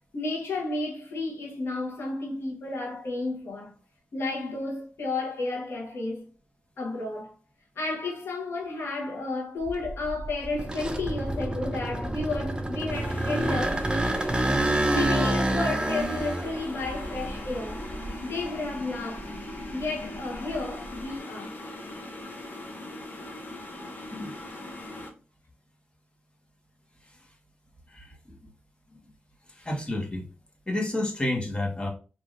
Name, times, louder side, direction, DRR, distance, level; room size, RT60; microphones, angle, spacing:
voice 1, 0.1-3.7 4.1-6.3 6.8-7.3 7.7-13.8 14.4-17.8 18.2-19.4 19.7-21.6, left 3 dB, 80° left, 1.0 m, -32 dB
sound 1, 9.7-18.7 19.1-21.0, right 1 dB, 20° right, 0.5 m, -29 dB
sound 2, 12.9-25.1, left 1 dB, 45° left, 0.9 m, -40 dB
voice 2, 27.9-28.4 29.5-30.3 30.7-31.9, left 1 dB, 25° left, 1.3 m, -30 dB
3.4 x 2.6 x 2.5 m
cardioid pair, 60°, 4 cm